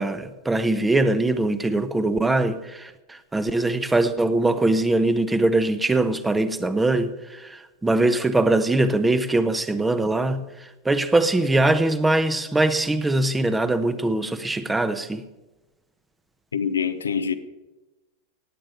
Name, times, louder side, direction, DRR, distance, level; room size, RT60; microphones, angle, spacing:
voice 1, 0.0-15.2, right 2 dB, 10° right, 0.9 m, -22 dB
voice 2, 16.5-17.3, left 7 dB, 70° left, 0.8 m, -25 dB
17.0 x 9.0 x 6.7 m
figure-of-eight pair, 90°, 0 cm